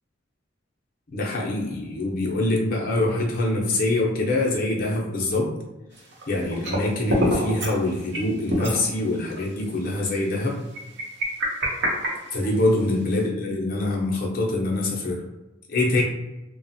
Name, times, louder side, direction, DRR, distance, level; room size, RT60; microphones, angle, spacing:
voice 1, 1.1-5.5 6.3-10.6 12.3-15.2 15.7-16.0, left 2 dB, 50° left, -3 dB, 0.5 m, -24 dB
sound 1, 6.0-7.8 8.1-8.2 8.5-8.8 9.4-9.5 10.7-12.8, equal, 60° right, 0.8 m, -26 dB
2.9 x 2.1 x 2.7 m, 1.0 s
head